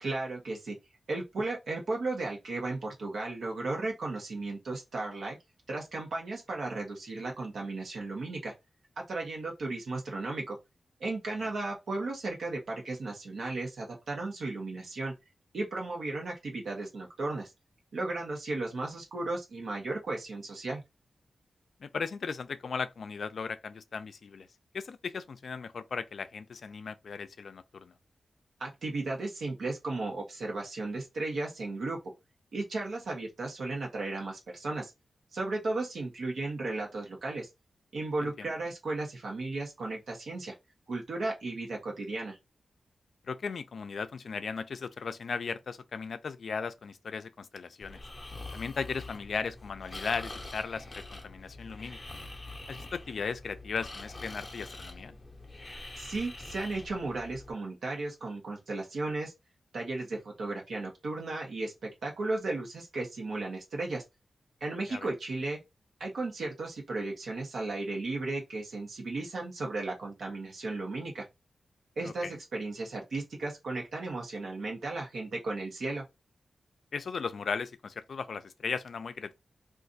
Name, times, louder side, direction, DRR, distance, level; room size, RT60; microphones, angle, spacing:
voice 1, 0.0-0.7 1.1-5.4 5.7-8.5 9.0-10.6 11.0-15.1 15.5-17.5 17.9-20.8 28.6-32.0 32.5-34.9 35.3-37.5 37.9-40.5 40.9-42.4 56.0-59.3 59.7-64.0 64.6-65.6 66.0-71.2 72.0-76.0, right 2 dB, 85° right, 0.9 m, -35 dB
voice 2, 21.8-24.5 24.7-27.9 38.2-38.5 43.2-48.0 48.5-52.0 52.7-55.1 64.9-65.1 72.0-72.3 76.9-79.3, left 5 dB, 70° left, 0.4 m, -37 dB
Breathing, 47.8-57.5, left 2 dB, 20° left, 0.6 m, -45 dB
2.5 x 2.4 x 3.9 m
wide cardioid pair, 145°, 0 cm